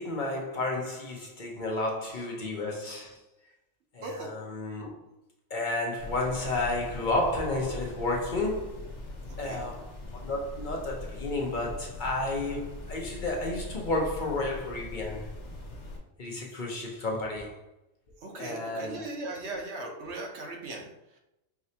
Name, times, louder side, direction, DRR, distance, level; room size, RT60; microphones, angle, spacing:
voice 1, 0.0-3.2 3.9-4.9 5.5-8.8 9.4-15.3 16.2-17.6 18.4-19.0, left 2 dB, 50° left, 0.8 m, -32 dB
voice 2, 4.0-4.3 9.3-9.7 18.2-21.2, right 2 dB, 70° right, 1.1 m, -39 dB
sound 1, 6.0-16.0, left 2 dB, 75° left, 1.2 m, -41 dB
4.9 x 3.1 x 2.7 m
omnidirectional pair, 1.2 m